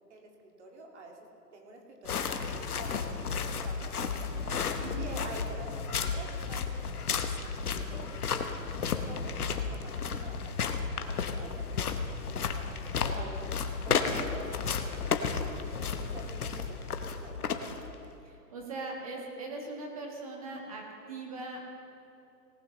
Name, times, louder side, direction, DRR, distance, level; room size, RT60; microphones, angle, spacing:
voice 1, 0.1-1.2 1.5-4.3 5.0-9.4 9.7-11.9 12.2-17.8, right 2 dB, 45° right, 1 dB, 2.1 m, -48 dB
sound 1, 2.0-18.1, left 5 dB, 65° left, 1.1 m, -33 dB
voice 2, 18.2-21.6, right 3 dB, 20° right, 0 dB, 1.3 m, -40 dB
18.5 x 12.0 x 3.1 m, 2.7 s
hypercardioid pair, 170°, 49 cm